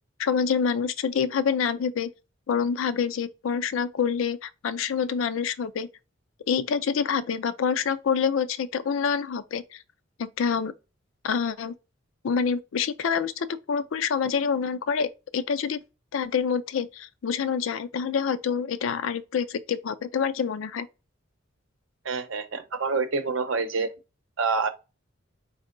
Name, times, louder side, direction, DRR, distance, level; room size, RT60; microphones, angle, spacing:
voice 1, 0.2-2.1 2.5-5.9 6.5-9.8 10.2-10.7 11.2-11.7 12.2-15.8 16.1-20.9, left 6 dB, 85° left, 0.4 m, -27 dB
voice 2, 22.0-23.9 24.4-24.7, right 4 dB, 75° right, 0.7 m, -27 dB
4.4 x 2.0 x 3.7 m
head